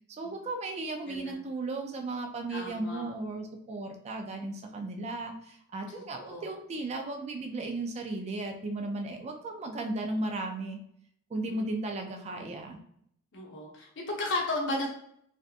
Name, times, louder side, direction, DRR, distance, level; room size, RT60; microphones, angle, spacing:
voice 1, 0.1-10.8 11.3-12.8, right 2 dB, 30° right, 3 dB, 0.3 m, -35 dB
voice 2, 1.1-1.4 2.5-3.1 5.9-6.5 11.4-11.5 13.3-14.9, left 2 dB, 55° left, -2 dB, 0.8 m, -34 dB
3.3 x 2.7 x 2.4 m, 0.70 s
head